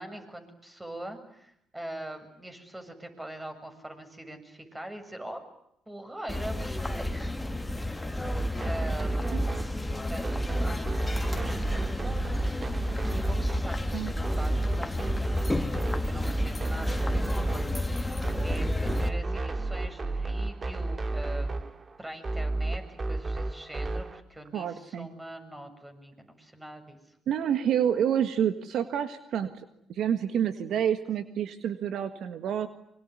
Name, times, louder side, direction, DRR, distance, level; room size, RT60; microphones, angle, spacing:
voice 1, 0.0-5.4 5.9-7.7 8.0-9.3 10.1-12.4 13.1-21.7 22.0-27.0, right 1 dB, 15° right, 7 dB, 7.3 m, -43 dB
sound 1, 6.3-19.1, left 1 dB, 10° left, 2.5 m, -32 dB
sound 2, 8.2-24.2, right 2 dB, 35° right, 2.2 m, -32 dB
voice 2, 24.5-25.1 27.3-29.5 29.9-32.7, right 9 dB, 70° right, 9 dB, 1.6 m, -28 dB
25.0 x 24.5 x 9.7 m, 0.76 s
supercardioid pair, 60°, 0 cm